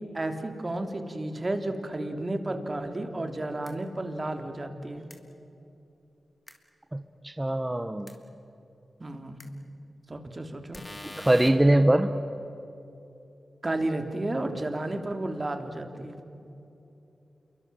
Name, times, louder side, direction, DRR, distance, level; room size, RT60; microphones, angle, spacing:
voice 1, 0.0-5.1 9.0-9.4 10.1-10.8 13.6-16.2, right 1 dB, 35° right, 5 dB, 3.3 m, -32 dB
sound 1, 3.6-3.7 5.1-5.2 6.5-6.6 8.1-8.2 9.4-9.5 10.7-11.5, left 2 dB, 25° left, 3.5 m, -42 dB
voice 2, 6.9-8.1 11.2-12.1, right 1 dB, 15° right, 8 dB, 1.2 m, -22 dB
27.5 x 23.5 x 7.7 m, 2.9 s
cardioid pair, 50°, 0 cm